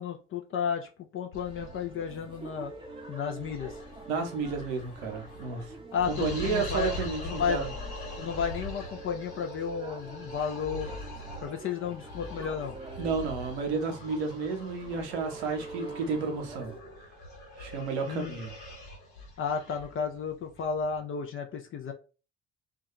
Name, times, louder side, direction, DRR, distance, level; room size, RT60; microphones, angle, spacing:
voice 1, 0.0-2.7 3.1-3.7 5.9-6.9 7.2-7.6 8.2-10.9 11.4-12.7 18.0-18.4 19.4-21.9, left 6 dB, 40° left, 0.5 m, -33 dB
sound 1, 1.3-21.0, left 1 dB, 65° left, 1.1 m, -42 dB
sound 2, 1.4-16.8, right 3 dB, 15° right, 0.7 m, -46 dB
voice 2, 4.1-5.7 6.1-7.7 13.0-16.7 17.6-18.5, right 4 dB, 70° right, 0.7 m, -32 dB
2.3 x 2.3 x 2.9 m
figure-of-eight pair, 40°, 34 cm